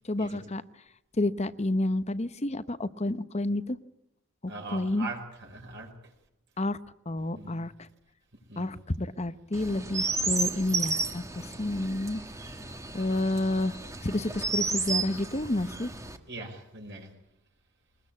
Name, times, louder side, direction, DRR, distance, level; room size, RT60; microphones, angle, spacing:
voice 1, 0.0-0.6 1.2-3.8 4.4-5.1 6.6-6.8 7.1-7.9 8.6-12.2 12.9-13.7 14.0-15.9, left 1 dB, 30° left, 13 dB, 0.9 m, -30 dB
voice 2, 4.5-5.9 7.3-7.6 8.5-8.7 16.3-17.1, right 3 dB, 50° right, 2 dB, 5.0 m, -41 dB
Chirp tweet, 9.5-16.2, right 3 dB, 15° right, 1.5 m, -33 dB
22.5 x 20.5 x 8.6 m, 0.81 s
head